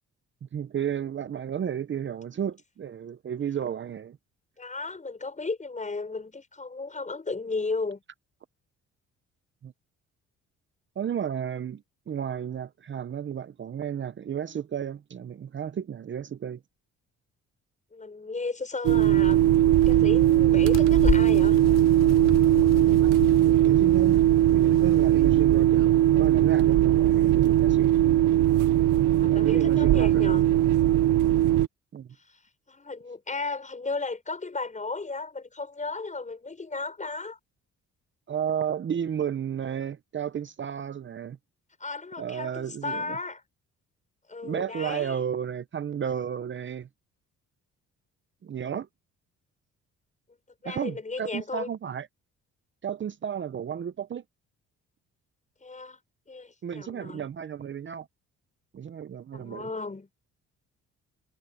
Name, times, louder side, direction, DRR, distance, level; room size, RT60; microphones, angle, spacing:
voice 1, 0.4-4.2 9.6-9.7 11.0-16.6 23.4-24.2 24.5-27.9 29.3-30.4 31.9-32.1 38.3-41.4 42.2-43.2 44.4-46.9 48.4-48.9 50.6-52.1 52.8-54.2 56.6-58.1 58.7-59.7, right 8 dB, 40° right, 0.8 m, -33 dB
voice 2, 4.6-8.0 17.9-19.4 19.9-21.6 29.1-30.4 32.7-37.4 41.8-43.4 44.3-45.2 50.6-51.7 55.6-56.0 56.3-57.3 59.3-60.1, left 3 dB, 25° left, 6.1 m, -34 dB
sound 1, 18.8-31.7, right 13 dB, 80° right, 0.8 m, -20 dB
sound 2, 19.0-25.7, left 8 dB, 55° left, 5.0 m, -34 dB
cardioid pair, 90°, 30 cm